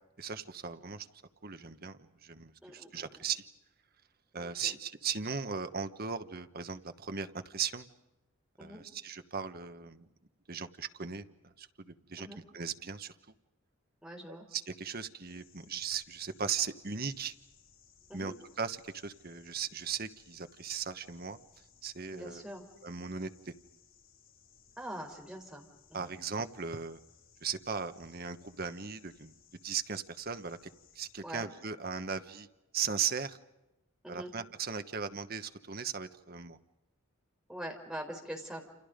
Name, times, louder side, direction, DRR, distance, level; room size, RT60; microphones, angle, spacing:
voice 1, 0.2-1.1 1.4-3.5 4.3-7.9 8.6-10.1 10.5-12.3 12.5-13.1 14.3-17.3 18.1-21.4 21.8-22.4 22.8-23.5 25.9-27.0 27.4-29.3 29.6-30.6 30.9-32.5 32.7-33.4 34.1-36.6, right 6 dB, 45° right, 9 dB, 1.2 m, -38 dB
voice 2, 2.6-3.2 4.3-4.8 8.6-8.8 12.2-12.4 14.0-14.5 18.1-18.3 22.1-22.7 24.8-26.2 31.2-31.5 34.0-34.3 37.5-38.6, right 1 dB, 5° right, 1 dB, 4.6 m, -44 dB
sound 1, 15.3-31.2, left 7 dB, 85° left, 6.5 m, -63 dB
29.0 x 28.5 x 5.2 m, 0.99 s
head